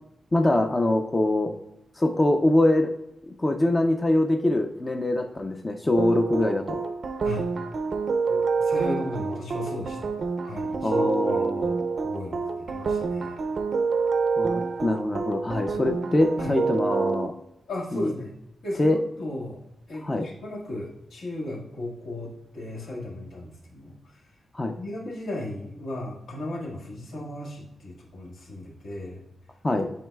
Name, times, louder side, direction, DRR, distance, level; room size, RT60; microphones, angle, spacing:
voice 1, 0.3-1.5 2.0-2.9 3.3-6.8 10.8-11.8 14.4-17.3 17.9-18.1 18.8-19.0 20.0-20.2 24.5-24.8 29.6-29.9, left 1 dB, 20° left, 5 dB, 0.4 m, -23 dB
sound 1, 6.0-17.3, right 4 dB, 50° right, 0.4 m, -27 dB
voice 2, 8.3-10.1 10.4-11.5 12.0-13.4 16.4-16.5 17.7-18.3 18.6-19.6 19.9-23.9 24.8-29.2, left 1 dB, 75° left, -2 dB, 1.8 m, -36 dB
9.1 x 4.7 x 2.3 m, 0.86 s
wide cardioid pair, 160°, 0 cm